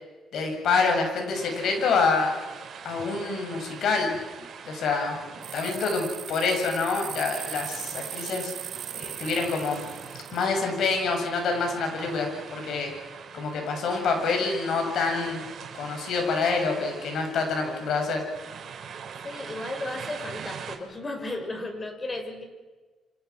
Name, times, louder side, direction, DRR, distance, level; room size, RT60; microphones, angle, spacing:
voice 1, 0.3-2.3 2.8-4.1 4.6-5.1 5.5-8.5 8.9-9.8 10.3-12.9 13.3-15.4 15.7-18.2, left 4 dB, 70° left, 3 dB, 8.0 m, -26 dB
sound 1, 1.3-20.8, right 7 dB, 60° right, 4.8 m, -43 dB
sound 2, 5.4-10.4, right 11 dB, 80° right, 1.7 m, -38 dB
voice 2, 19.2-22.4, left 2 dB, 30° left, 5 dB, 6.7 m, -34 dB
30.0 x 26.5 x 6.3 m, 1.3 s
cardioid pair, 90°, 0 cm